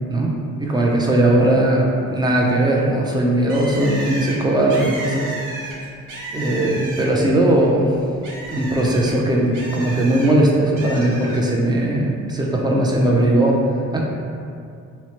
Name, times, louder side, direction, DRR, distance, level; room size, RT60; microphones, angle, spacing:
voice 1, 0.6-5.6 6.3-7.9 8.5-13.6 13.9-14.0, right 1 dB, 15° right, -2 dB, 0.4 m, -18 dB
Bird, 3.5-7.3 7.7-10.3 10.8-11.4, right 1 dB, 80° right, 0.6 m, -33 dB
3.0 x 2.0 x 2.8 m, 2.4 s
cardioid pair, 90°, 30 cm